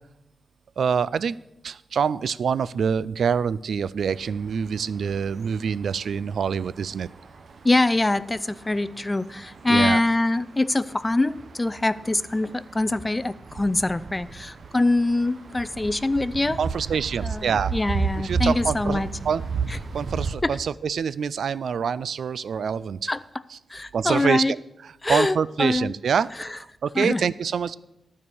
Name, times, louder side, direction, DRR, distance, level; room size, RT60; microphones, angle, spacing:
voice 1, 0.8-1.4 1.6-7.1 9.7-10.0 16.6-17.7 18.2-19.4 19.7-23.0 23.9-24.6 25.1-27.7, right 6 dB, 85° right, 18 dB, 0.3 m, -26 dB
sound 1, 4.1-20.4, right 5 dB, 65° right, 0.7 m, -34 dB
voice 2, 7.6-16.6 17.2-19.1 19.7-19.8 20.4-20.6 23.1-23.2 23.7-24.5 25.0-26.0 26.4-26.6 26.9-27.3, left 2 dB, 20° left, 15 dB, 0.4 m, -24 dB
12.5 x 4.7 x 6.9 m, 0.87 s
wide cardioid pair, 110°, 0 cm